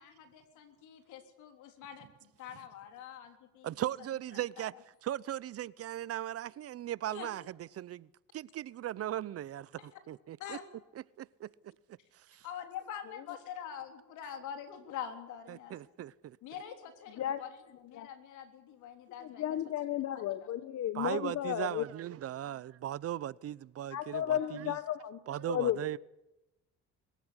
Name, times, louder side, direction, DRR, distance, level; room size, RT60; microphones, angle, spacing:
voice 1, 0.0-3.7 4.6-4.8 7.1-7.3 9.8-10.0 10.4-10.6 12.4-15.8 16.4-19.4 20.1-20.5 22.4-22.6 24.4-24.6, left 9 dB, 80° left, 3.7 m, -45 dB
voice 2, 3.6-4.7 5.0-8.1 8.3-10.6 11.2-11.7 12.1-12.4 15.5-16.4 20.9-24.8 25.3-26.0, right 12 dB, 50° right, 0.7 m, -38 dB
voice 3, 19.2-21.8 23.9-25.2 25.5-25.8, left 11 dB, 60° left, 1.2 m, -33 dB
22.0 x 15.0 x 9.7 m
cardioid pair, 95°, 30 cm